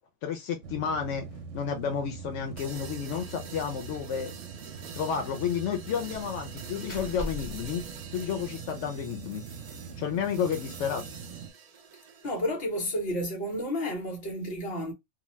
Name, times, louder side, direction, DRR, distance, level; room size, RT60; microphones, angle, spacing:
voice 1, 0.2-1.3 1.5-4.3 4.9-7.8 8.1-9.4 10.0-11.0, left 7 dB, 85° left, 0.9 m, -31 dB
sound 1, 0.6-11.5, right 6 dB, 85° right, 0.9 m, -43 dB
sound 2, 2.6-12.4, right 6 dB, 60° right, 0.4 m, -47 dB
Slam, 3.1-3.4 3.7-3.8 4.2-4.3 6.1-8.7, left 1 dB, 35° left, 0.6 m, -43 dB
voice 2, 12.2-14.9, equal, 55° left, 1.3 m, -31 dB
2.8 x 2.0 x 3.0 m
omnidirectional pair, 1.2 m